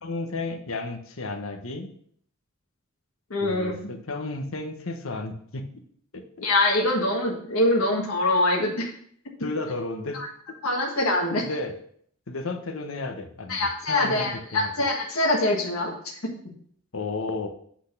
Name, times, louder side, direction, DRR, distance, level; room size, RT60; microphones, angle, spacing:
voice 1, 0.0-1.9 3.4-5.8 6.1-6.5 9.4-10.2 11.4-11.7 12.3-13.6 13.9-14.7 16.9-17.5, left 2 dB, 70° left, 5 dB, 1.2 m, -33 dB
voice 2, 3.3-3.7 6.4-8.9 10.1-10.3 10.6-11.5 13.5-16.1, left 2 dB, 90° left, -1 dB, 1.6 m, -24 dB
8.1 x 4.2 x 6.6 m, 0.63 s
head